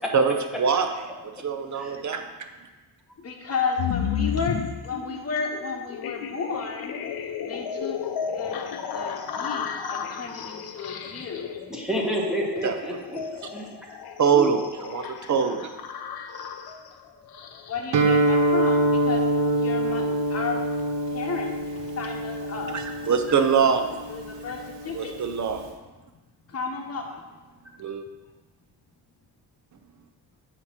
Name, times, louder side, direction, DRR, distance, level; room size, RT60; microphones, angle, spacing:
voice 1, 0.1-0.9 1.4-2.2 12.6-13.0 14.2-15.7 22.7-23.9 24.9-25.6 27.8-28.0, right 6 dB, 45° right, 6 dB, 0.7 m, -23 dB
voice 2, 3.2-6.9 7.4-11.6 17.7-19.3 19.5-20.6 21.1-22.9 23.3-25.3 26.5-27.2, left 4 dB, 35° left, 1 dB, 1.0 m, -33 dB
sound 1, 3.8-17.9, left 7 dB, 60° left, 0.6 m, -33 dB
voice 3, 11.7-13.2 13.5-14.0 14.3-14.5, equal, ahead, -2 dB, 1.1 m, -29 dB
Guitar, 17.9-25.7, right 1 dB, 85° right, 0.8 m, -25 dB
7.9 x 3.0 x 5.8 m, 1.2 s
cardioid pair, 105°, 42 cm